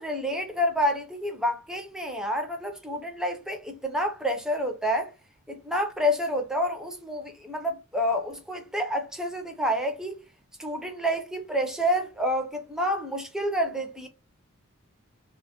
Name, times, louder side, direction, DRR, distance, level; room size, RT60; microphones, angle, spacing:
voice 1, 0.0-5.1 5.5-10.2 10.6-14.1, equal, 5° right, 0.4 m, -28 dB
2.2 x 2.0 x 2.8 m
head